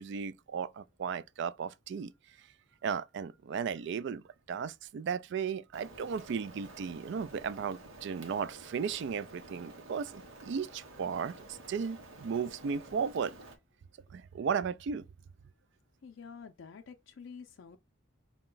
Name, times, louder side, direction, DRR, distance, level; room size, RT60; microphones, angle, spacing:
voice 1, 0.0-2.1 2.8-13.3 14.1-15.1, right 6 dB, 60° right, 0.3 m, -35 dB
Rain, 5.7-13.6, right 2 dB, 80° right, 0.9 m, -51 dB
voice 2, 16.0-17.8, left 5 dB, 65° left, 0.4 m, -48 dB
4.7 x 2.2 x 3.8 m
head